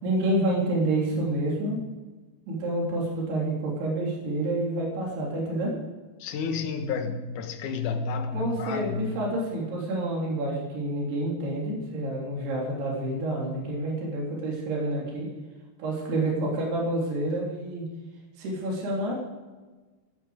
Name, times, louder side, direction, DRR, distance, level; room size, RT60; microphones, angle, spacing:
voice 1, 0.0-1.8 2.5-5.7 8.3-15.3 15.8-17.9 18.4-19.2, right 1 dB, 75° right, -3 dB, 5.6 m, -28 dB
voice 2, 6.2-9.2, left 5 dB, 60° left, 6 dB, 2.4 m, -31 dB
17.5 x 11.5 x 5.1 m, 1.2 s
omnidirectional pair, 4.7 m